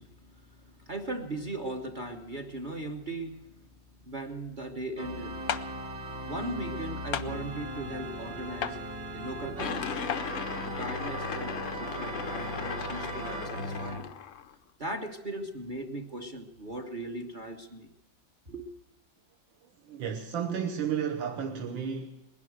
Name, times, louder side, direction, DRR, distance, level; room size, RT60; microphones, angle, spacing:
voice 1, 0.0-3.7 4.1-5.5 6.3-8.8 9.1-10.0 10.6-14.1 14.8-17.9 18.5-18.7, right 2 dB, 30° right, 1.0 m, -38 dB
Organ, 5.0-14.1, right 1 dB, 50° right, 1.6 m, -38 dB
sound 1, 5.5-5.7 7.1-7.3 8.6-8.8 10.1-10.2, left 9 dB, 65° left, 0.9 m, -31 dB
sound 2, 9.6-14.5, left 9 dB, 85° left, 0.6 m, -37 dB
voice 2, 19.9-22.1, right 7 dB, 70° right, 1.8 m, -32 dB
20.5 x 11.0 x 6.4 m
omnidirectional pair, 2.2 m